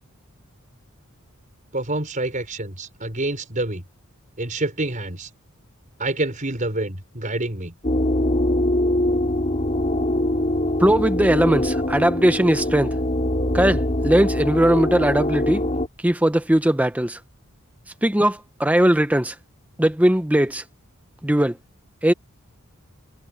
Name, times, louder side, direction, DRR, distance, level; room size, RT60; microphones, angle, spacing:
voice 1, 1.7-3.8 4.4-5.3 6.0-7.7, right 2 dB, 35° right, 5.2 m, -27 dB
sound 1, 7.8-15.9, left 1 dB, 30° left, 4.4 m, -23 dB
voice 2, 10.8-12.9 13.5-15.6 16.0-17.2 18.0-19.4 19.8-20.6 21.2-21.6 22.0-22.1, right 1 dB, 5° right, 0.7 m, -19 dB
head